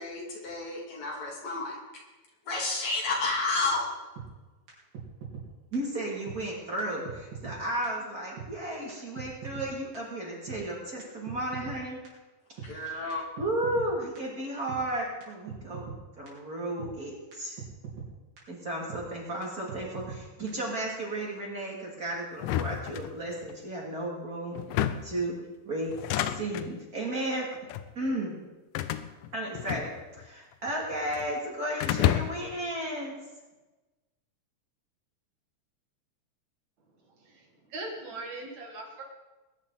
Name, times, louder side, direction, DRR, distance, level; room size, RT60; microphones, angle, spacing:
voice 1, 0.0-1.8 2.5-3.9 12.6-13.2, left 3 dB, 55° left, -2 dB, 3.7 m, -31 dB
sound 1, 4.2-4.3 4.7-4.8 4.9-5.5 5.7-5.8 6.3-6.4 6.8-6.9 7.0-7.6 7.8-7.9 8.4-8.5 8.9-9.0 9.2-9.7 9.9-10.0 10.5-10.6 11.0-11.8 12.0-12.1 12.6-12.7 13.1-13.2 13.4-13.9 14.2-14.3 14.7-14.8 15.2-15.3 15.5-16.0 16.3-16.4 16.8-16.9 17.3-17.4 17.6-18.1 18.4-18.5 18.9-19.0 19.4-19.5 19.7-20.2 20.5-20.6, right 7 dB, 85° right, 5.4 m, -40 dB
voice 2, 5.7-12.0 12.6-13.0 13.4-17.6 18.5-24.6 25.0-25.4 25.6-27.5 27.9-28.4 29.3-29.9 30.2-33.2, right 1 dB, 30° right, -3 dB, 3.0 m, -34 dB
sound 2, 22.4-23.6 24.6-25.2 25.9-26.7 27.5-27.9 28.7-30.3 30.5-31.3 31.8-32.6, left 12 dB, 80° left, 2.2 m, -30 dB
voice 3, 37.1-39.0, right 2 dB, 60° right, 1 dB, 3.0 m, -40 dB
21.0 x 10.5 x 4.1 m, 1.2 s
omnidirectional pair, 3.8 m